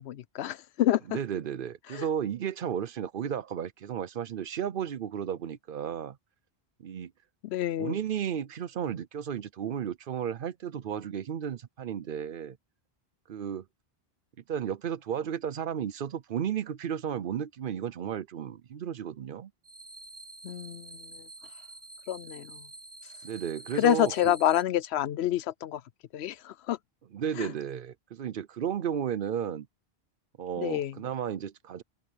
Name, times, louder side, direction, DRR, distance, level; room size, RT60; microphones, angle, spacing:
voice 1, 0.0-1.0 1.9-2.0 7.4-8.0 20.4-21.3 22.1-22.6 23.7-25.8 26.1-26.8 27.4-27.5 30.6-30.9, left 12 dB, 85° left, 0.9 m, -28 dB
voice 2, 1.1-6.2 6.8-7.1 7.8-12.6 13.3-13.7 14.5-19.5 23.2-24.3 27.1-29.7 30.4-31.8, right 8 dB, 60° right, 0.8 m, -33 dB
sound 1, 19.6-24.6, right 3 dB, 40° right, 2.4 m, -48 dB
omnidirectional pair, 1.1 m